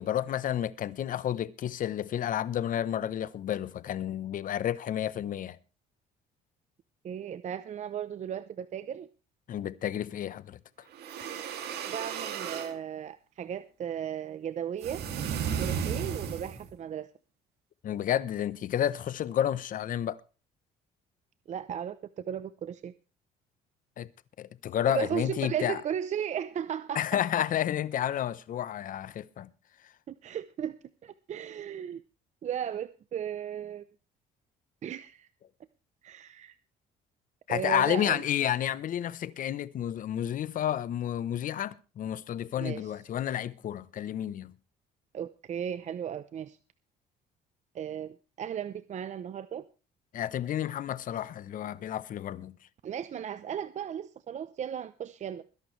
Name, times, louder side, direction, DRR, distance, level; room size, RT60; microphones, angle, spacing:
voice 1, 0.0-5.6 9.5-10.6 17.8-20.2 24.0-24.1 24.4-25.8 26.9-29.5 37.5-44.5 50.1-52.6, left 10 dB, 50° left, 0.9 m, -31 dB
voice 2, 7.0-9.1 11.9-15.0 15.6-17.1 21.5-22.9 24.9-27.2 30.1-30.7 31.0-32.0 32.4-33.8 34.8-35.3 36.0-36.6 37.5-38.2 42.6-42.9 45.1-46.6 47.7-49.6 52.8-55.4, right 9 dB, 45° right, 0.7 m, -36 dB
sound 1, 10.9-12.7 14.8-16.7, right 7 dB, 75° right, 2.6 m, -34 dB
21.5 x 11.0 x 3.2 m
cardioid pair, 110°, 17 cm